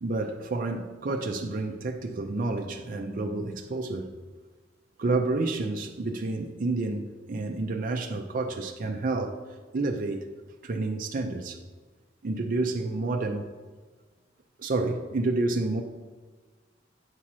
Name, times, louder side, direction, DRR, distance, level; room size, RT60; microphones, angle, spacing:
voice 1, 0.0-4.2 5.0-9.4 9.7-10.3 10.6-11.6 12.2-13.5 14.6-15.8, right 2 dB, 50° right, 0.5 m, -29 dB
8.3 x 2.9 x 6.0 m
head